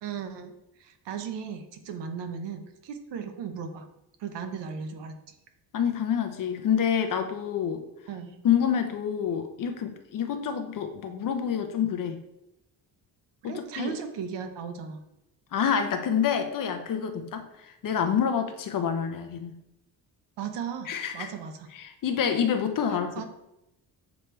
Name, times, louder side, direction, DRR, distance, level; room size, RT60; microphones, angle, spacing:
voice 1, 0.0-0.5 0.8-3.8 4.2-5.4 8.1-8.4 13.4-15.0 20.4-21.7 22.9-23.2, right 6 dB, 75° right, 7 dB, 0.9 m, -36 dB
voice 2, 5.7-7.9 8.4-12.2 13.4-13.9 15.5-19.6 20.9-21.3 21.7-23.2, left 8 dB, 50° left, 6 dB, 0.6 m, -27 dB
7.3 x 3.2 x 4.4 m, 0.86 s
cardioid pair, 155°, 43 cm